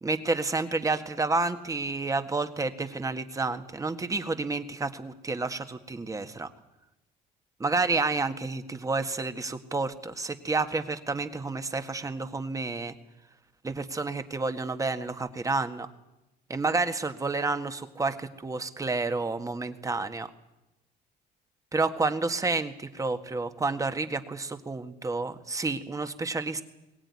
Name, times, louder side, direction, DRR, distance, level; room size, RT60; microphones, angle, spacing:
voice 1, 0.0-6.5 7.6-12.9 13.6-15.9 16.5-20.3 21.7-26.6, right 3 dB, 20° right, 8 dB, 1.7 m, -30 dB
22.0 x 17.5 x 9.8 m, 0.95 s
cardioid pair, 110°, 17 cm